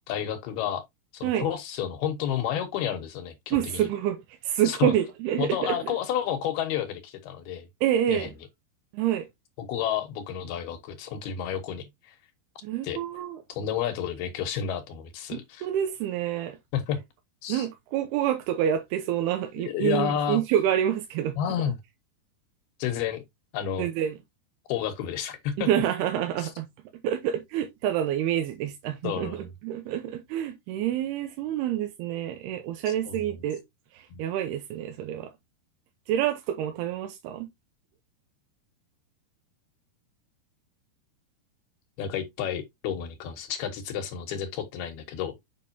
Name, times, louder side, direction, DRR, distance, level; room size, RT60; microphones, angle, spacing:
voice 1, 0.1-0.8 1.1-3.9 4.6-4.9 5.4-7.7 8.1-8.3 9.6-12.2 12.8-13.0 13.5-15.7 16.7-17.0 17.4-17.7 19.6-20.4 21.4-21.8 22.8-23.2 23.5-23.9 24.7-25.7 26.4-26.5 29.0-29.4 32.9-33.2 34.1-34.2 42.0-45.4, left 9 dB, 75° left, 2.9 m, -31 dB
voice 2, 3.5-6.0 7.8-8.3 8.9-9.3 12.6-13.4 15.3-16.6 17.5-21.4 23.8-24.2 25.6-26.7 27.0-33.6 33.9-35.3 36.1-37.5, right 11 dB, 85° right, 2.8 m, -27 dB
7.4 x 5.4 x 2.7 m
omnidirectional pair, 4.6 m